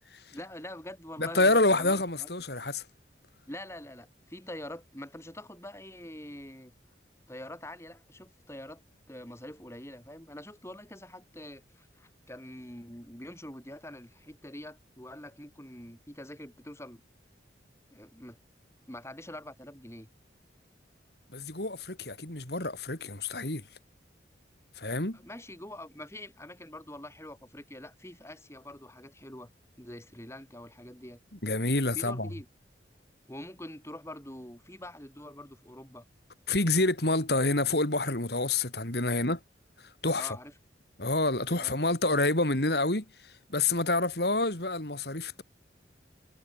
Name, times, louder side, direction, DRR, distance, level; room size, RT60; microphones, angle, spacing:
voice 1, 0.3-2.3 3.5-6.7 7.3-8.8 9.1-17.0 17.9-18.4 18.9-20.1 25.1-29.5 29.8-31.2 31.9-32.5 33.3-36.1 39.1-39.3 40.1-40.5 41.6-41.8, left 1 dB, 15° left, 5.3 m, -45 dB
voice 2, 1.2-2.8 21.3-23.6 24.8-25.2 31.4-32.3 36.5-39.4 40.0-40.3 41.0-43.1 43.5-45.4, left 2 dB, 60° left, 3.6 m, -27 dB
head